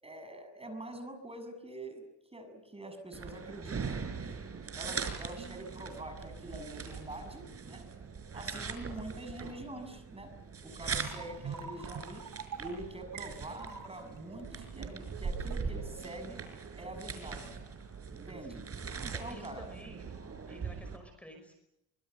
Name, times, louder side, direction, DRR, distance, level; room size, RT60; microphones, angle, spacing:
voice 1, 0.0-2.0 2.3-4.1 4.7-7.9 8.3-10.3 10.6-12.2 12.6-16.4 16.8-17.6 18.1-18.6 19.0-19.7, right 1 dB, 15° right, 8 dB, 6.9 m, -45 dB
sound 1, 3.1-21.0, right 5 dB, 40° right, 5.4 m, -41 dB
sound 2, 10.8-16.1, right 6 dB, 60° right, 2.7 m, -46 dB
voice 2, 19.1-20.0 20.5-21.5, equal, 5° left, 6 dB, 5.6 m, -52 dB
25.0 x 24.5 x 8.2 m, 0.87 s
cardioid pair, 95°, 37 cm